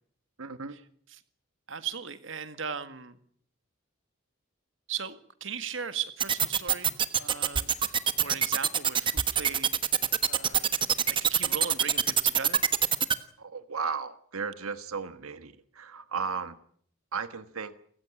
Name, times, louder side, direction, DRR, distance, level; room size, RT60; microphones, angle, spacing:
voice 1, 0.4-0.8 13.4-16.6 17.1-17.7, right 5 dB, 90° right, 11 dB, 1.4 m, -35 dB
voice 2, 1.7-3.2 4.9-7.9 8.2-9.7 10.2-10.8 11.1-12.6, right 7 dB, 65° right, 11 dB, 1.9 m, -38 dB
sound 1, 6.2-13.1, right 8 dB, 25° right, 1.3 m, -24 dB
29.0 x 15.5 x 9.9 m, 0.62 s
head